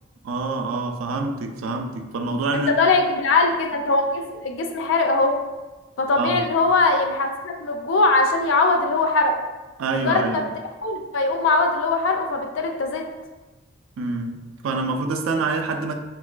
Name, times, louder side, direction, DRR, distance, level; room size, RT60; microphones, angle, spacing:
voice 1, 0.2-2.8 6.2-6.4 9.8-10.5 14.0-14.4 14.6-15.9, right 3 dB, 85° right, 5 dB, 0.3 m, -26 dB
voice 2, 2.5-5.4 6.0-9.4 9.9-10.4 10.8-13.1, left 3 dB, 70° left, 3 dB, 0.4 m, -21 dB
3.9 x 2.2 x 2.4 m, 1.2 s
head